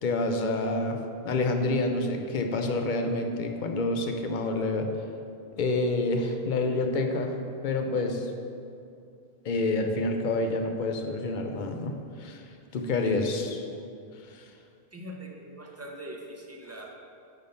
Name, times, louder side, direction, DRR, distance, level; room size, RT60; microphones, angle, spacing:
voice 1, 0.0-4.9 5.6-7.4 7.6-8.3 9.4-12.4 12.7-13.6 14.3-14.5, left 2 dB, 50° left, 4 dB, 0.7 m, -28 dB
voice 2, 14.9-17.0, right 1 dB, 15° right, 0 dB, 0.6 m, -42 dB
8.9 x 3.6 x 5.5 m, 2.5 s
omnidirectional pair, 1.1 m